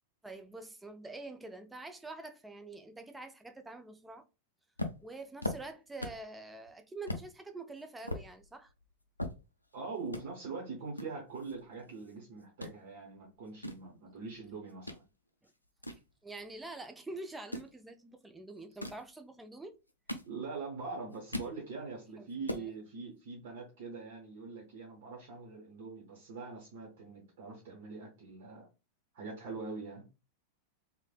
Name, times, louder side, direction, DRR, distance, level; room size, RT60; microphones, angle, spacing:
voice 1, 0.2-4.3 5.0-8.7 15.4-15.5 16.2-19.8 22.2-22.7, right 2 dB, 10° right, 0.3 m, -46 dB
sound 1, 4.8-6.3 6.7-6.8 7.1-7.3 7.8-9.8 10.1-10.2 11.0-12.1 12.4-12.8 13.3-15.0 15.4-16.7 17.3-17.7 18.6-19.1 19.7-20.7 21.0-21.6 22.0-22.1 22.3-22.7, left 1 dB, 85° left, 0.3 m, -40 dB
voice 2, 9.7-15.0 20.2-28.7 29.1-30.1, right 4 dB, 50° right, 0.8 m, -43 dB
3.1 x 2.0 x 2.2 m
figure-of-eight pair, 90°, 0 cm